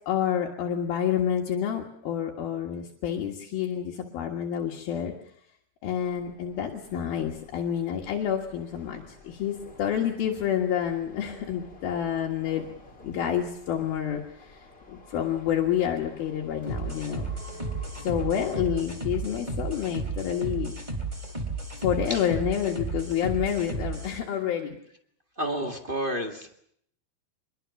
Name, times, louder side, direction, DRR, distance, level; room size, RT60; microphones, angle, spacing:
voice 1, 0.1-5.1 5.8-12.6 13.0-14.6 14.9-17.3 18.0-20.7 21.8-24.8, left 9 dB, 70° left, 1 dB, 3.5 m, -28 dB
sound 1, 6.0-18.6, left 1 dB, 15° left, 3.2 m, -50 dB
sound 2, 16.7-24.2, right 3 dB, 10° right, 3.3 m, -33 dB
voice 2, 25.4-26.6, equal, 40° right, 3 dB, 0.7 m, -30 dB
24.0 x 22.5 x 7.0 m, 0.70 s
omnidirectional pair, 4.5 m